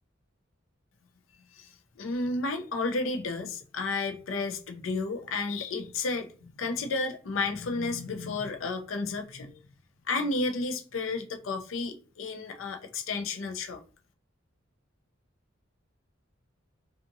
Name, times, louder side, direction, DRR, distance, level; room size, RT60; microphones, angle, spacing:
voice 1, 2.0-9.6 10.1-13.8, left 3 dB, 80° left, 0.5 m, -32 dB
2.6 x 2.4 x 2.6 m
head